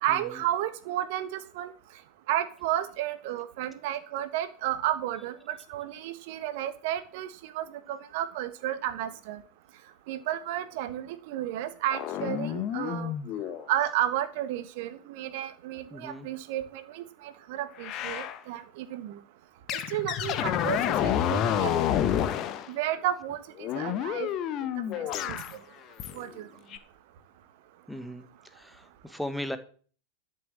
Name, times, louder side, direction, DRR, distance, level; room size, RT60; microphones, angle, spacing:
voice 1, 0.0-1.7 2.3-9.4 10.1-13.1 13.7-19.2 19.9-21.7 22.7-24.3 25.0-25.4 26.1-26.5, right 12 dB, 50° right, 12 dB, 1.4 m, -32 dB
sound 1, 11.9-13.6 17.8-18.4 19.7-22.7 23.6-25.5 26.0-26.3 26.7-26.8, left 10 dB, 35° left, 1.3 m, -29 dB
voice 2, 15.9-16.3 27.9-28.2 28.6-29.6, left 1 dB, ahead, 11 dB, 1.3 m, -37 dB
12.5 x 6.9 x 7.7 m, 0.44 s
figure-of-eight pair, 90°, 0 cm